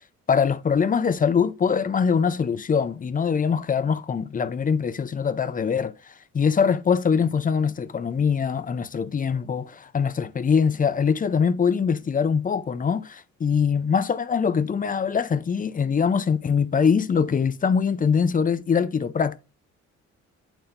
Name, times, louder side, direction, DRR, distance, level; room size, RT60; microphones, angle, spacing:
voice 1, 0.3-19.4, left 6 dB, 30° left, 0.5 m, -23 dB
8.5 x 4.4 x 2.5 m
cardioid pair, 90°, 30 cm